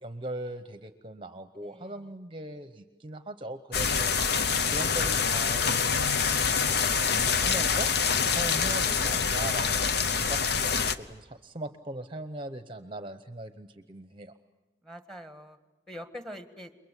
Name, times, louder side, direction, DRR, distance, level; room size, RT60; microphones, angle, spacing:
voice 1, 0.0-7.9 8.3-14.3, right 1 dB, 30° right, 9 dB, 0.9 m, -40 dB
voice 2, 1.6-2.0 14.8-15.6 15.9-16.7, equal, ahead, 8 dB, 1.6 m, -44 dB
sound 1, 3.7-11.0, left 6 dB, 60° left, 0.9 m, -26 dB
29.0 x 23.0 x 8.3 m, 1.1 s
head